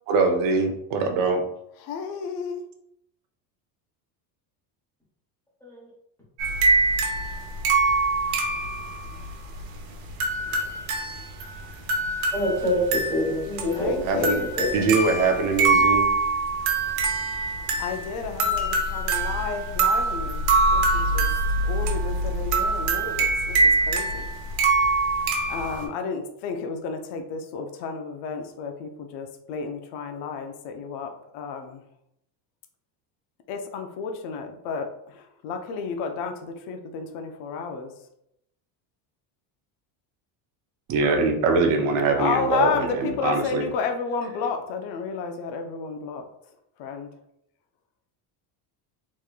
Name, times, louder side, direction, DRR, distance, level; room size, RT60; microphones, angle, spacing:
voice 1, 0.1-1.4 14.0-14.4 14.7-16.1 40.9-43.7, right 4 dB, 45° right, 4 dB, 0.6 m, -23 dB
voice 2, 1.8-2.6 13.7-14.5 17.8-21.3 21.6-24.3 25.5-31.8 33.5-37.9 42.2-46.2 46.8-47.1, left 5 dB, 60° left, 5 dB, 0.6 m, -32 dB
sound 1, 6.4-25.9, right 3 dB, 85° right, 0.9 m, -24 dB
voice 3, 12.3-14.3 14.6-14.9, left 1 dB, 5° left, -7 dB, 1.1 m, -26 dB
3.6 x 3.0 x 2.3 m, 0.76 s
cardioid pair, 175°, 47 cm